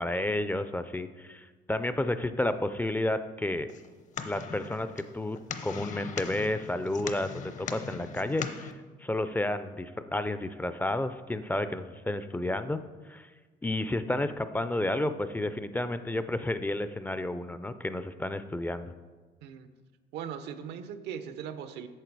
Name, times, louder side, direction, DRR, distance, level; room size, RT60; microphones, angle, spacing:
voice 1, 0.0-3.7 4.2-8.7 9.0-12.8 13.1-13.3 13.6-18.9, left 1 dB, 10° left, 11 dB, 0.4 m, -31 dB
sound 1, 3.7-8.7, left 6 dB, 45° left, 0.8 m, -40 dB
voice 2, 20.1-21.9, right 8 dB, 85° right, 10 dB, 0.8 m, -39 dB
9.0 x 6.5 x 4.7 m, 1.4 s
cardioid pair, 110°, 17 cm